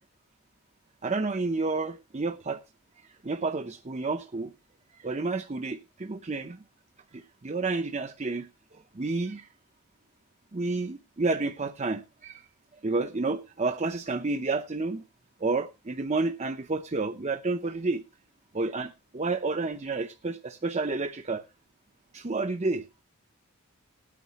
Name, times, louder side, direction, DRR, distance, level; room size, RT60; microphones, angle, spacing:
voice 1, 1.0-2.6 3.0-4.5 4.9-6.6 7.1-9.5 10.5-12.4 12.8-15.0 15.4-18.0 18.5-21.4 22.1-22.8, right 3 dB, 30° right, 0.6 m, -30 dB
19.0 x 9.4 x 2.9 m
head